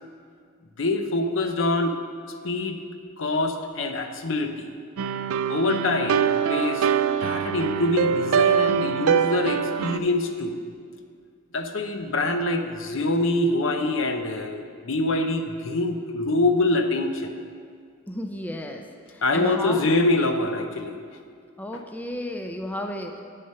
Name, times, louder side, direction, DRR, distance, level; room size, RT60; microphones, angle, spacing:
voice 1, 0.8-2.0 2.4-2.8 3.2-4.7 5.5-6.9 7.2-10.6 11.5-17.3 19.2-21.0 21.7-21.8, left 2 dB, 65° left, 6 dB, 0.7 m, -25 dB
sound 1, 5.0-10.0, right 8 dB, 85° right, 0.4 m, -23 dB
voice 2, 18.1-18.8 19.1-19.9 21.6-23.2, left 1 dB, 10° left, 4 dB, 0.4 m, -33 dB
8.9 x 6.5 x 5.6 m, 2.2 s
head